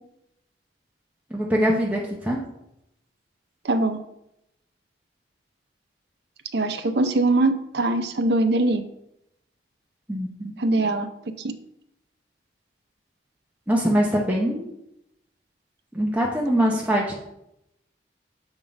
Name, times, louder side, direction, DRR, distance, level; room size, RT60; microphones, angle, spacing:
voice 1, 1.3-2.4 10.1-10.8 13.7-14.7 15.9-17.1, equal, 10° right, -3 dB, 0.7 m, -23 dB
voice 2, 3.6-4.0 6.5-8.8 10.6-11.1 11.4-11.5, right 2 dB, 70° right, 8 dB, 0.6 m, -22 dB
7.1 x 3.6 x 5.1 m, 0.82 s
head